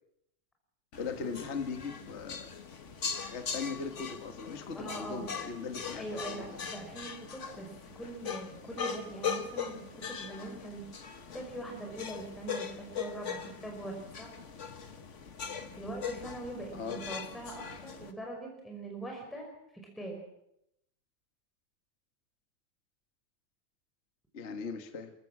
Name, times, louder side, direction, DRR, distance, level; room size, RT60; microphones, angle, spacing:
sound 1, 0.9-18.1, left 6 dB, 65° left, 0.7 m, -40 dB
voice 1, 1.0-2.5 3.2-6.6 16.7-17.0 24.3-25.1, left 5 dB, 30° left, 7 dB, 1.2 m, -39 dB
voice 2, 4.7-5.2 5.9-7.7 7.9-10.8 11.3-14.3 15.8-20.2, right 2 dB, ahead, 1 dB, 5.2 m, -42 dB
28.5 x 15.0 x 7.4 m, 0.80 s
omnidirectional pair, 3.4 m